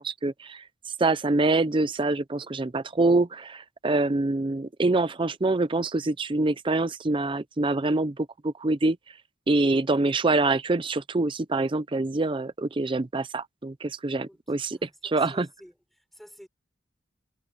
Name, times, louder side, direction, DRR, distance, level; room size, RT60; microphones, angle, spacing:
voice 1, 0.0-9.0 9.5-15.5, right 2 dB, 25° right, 0.5 m, -25 dB
voice 2, 14.7-16.5, equal, ahead, 6.0 m, -52 dB
head